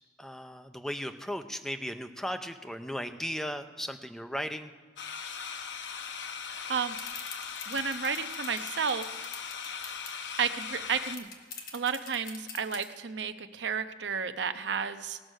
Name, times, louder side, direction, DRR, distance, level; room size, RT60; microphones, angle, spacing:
voice 1, 0.2-4.7, equal, 5° left, 7 dB, 0.6 m, -36 dB
sound 1, 5.0-11.2, left 6 dB, 75° left, 0.9 m, -39 dB
sound 2, 7.0-10.2 10.6-10.7 10.9-12.8, left 5 dB, 50° left, 1.7 m, -44 dB
voice 2, 7.7-9.3 10.4-11.3 11.7-15.2, right 6 dB, 70° right, 10 dB, 0.7 m, -32 dB
19.0 x 6.4 x 6.3 m, 1.5 s
head